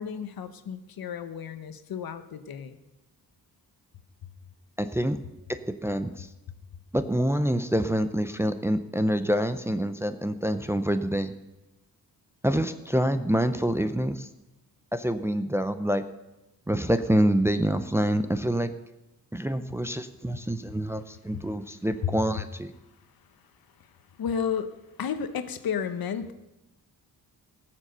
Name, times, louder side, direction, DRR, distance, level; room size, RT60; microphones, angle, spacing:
voice 1, 0.0-2.8 23.8-24.7 25.0-26.3, left 7 dB, 70° left, 10 dB, 1.1 m, -33 dB
voice 2, 4.8-5.2 5.5-6.3 6.9-11.3 12.4-14.3 14.9-16.0 16.7-18.7 19.3-22.7, equal, 5° right, 9 dB, 0.5 m, -26 dB
19.0 x 7.4 x 6.7 m, 0.98 s
wide cardioid pair, 150°, 37 cm